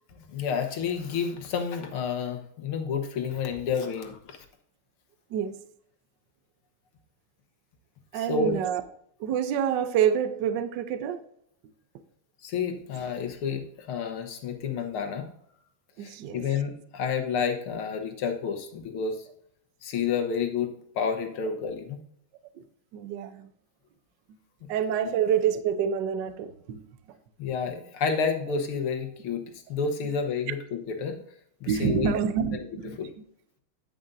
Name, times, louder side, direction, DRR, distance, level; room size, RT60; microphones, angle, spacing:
voice 1, 0.1-4.4 8.1-8.6 12.4-15.3 16.0-19.3 19.8-22.0 27.4-31.2 31.6-32.1 32.5-32.7 33.0-33.1, left 6 dB, 85° left, 5 dB, 2.0 m, -30 dB
voice 2, 8.1-8.8 9.2-11.2 16.0-16.4 22.9-23.4 24.7-26.8 31.7-33.0, right 8 dB, 65° right, 11 dB, 1.2 m, -27 dB
9.3 x 9.1 x 2.6 m, 0.69 s
omnidirectional pair, 2.3 m